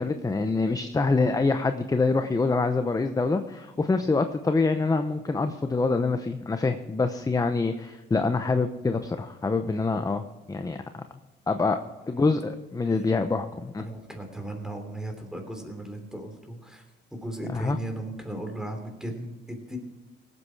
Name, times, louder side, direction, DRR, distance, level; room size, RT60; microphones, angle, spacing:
voice 1, 0.0-11.0 11.5-11.8 12.1-13.8 17.5-17.8, left 3 dB, 20° left, 8 dB, 0.8 m, -25 dB
voice 2, 13.8-16.8 17.1-19.8, right 1 dB, 5° right, 5 dB, 3.1 m, -37 dB
17.5 x 8.3 x 4.7 m, 1.2 s
cardioid pair, 90°, 20 cm